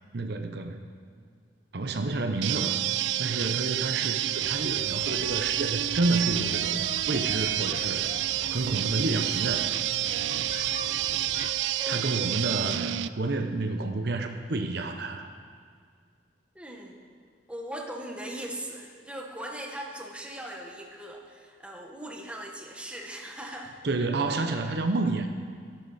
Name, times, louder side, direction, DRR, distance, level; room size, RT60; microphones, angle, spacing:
voice 1, 0.1-0.8 1.7-2.8 3.2-8.1 8.5-9.7 11.9-15.3 23.8-25.3, right 2 dB, 65° right, 6 dB, 0.7 m, -29 dB
sound 1, 2.4-13.1, right 13 dB, 85° right, 0.3 m, -29 dB
sound 2, 4.4-11.5, left 3 dB, 50° left, 0.7 m, -43 dB
voice 2, 16.5-17.0 17.5-23.7, right 1 dB, 5° right, 1 dB, 1.2 m, -39 dB
13.0 x 11.5 x 4.2 m, 2.1 s
head